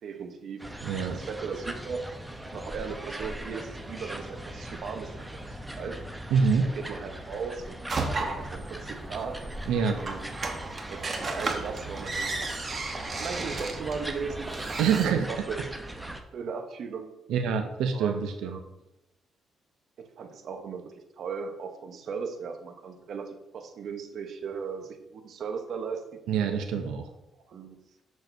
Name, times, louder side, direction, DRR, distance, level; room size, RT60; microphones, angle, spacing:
voice 1, 0.0-0.7 1.0-5.3 5.8-6.0 6.6-9.4 9.9-10.3 10.6-11.0 11.3-12.6 13.2-14.7 15.0-15.6 16.3-17.1 17.9-18.7 20.0-26.2 27.5-27.8, right 5 dB, 65° right, 6 dB, 0.9 m, -37 dB
sound 1, 0.6-16.2, right 1 dB, 10° right, 0.7 m, -40 dB
voice 2, 0.8-1.2 6.3-6.7 9.7-10.0 14.8-15.3 17.3-18.6 26.3-27.1, right 6 dB, 90° right, 6 dB, 0.5 m, -26 dB
sound 2, 7.9-15.1, right 3 dB, 40° right, 1.0 m, -34 dB
6.4 x 6.2 x 2.7 m, 0.92 s
cardioid pair, 90°, 0 cm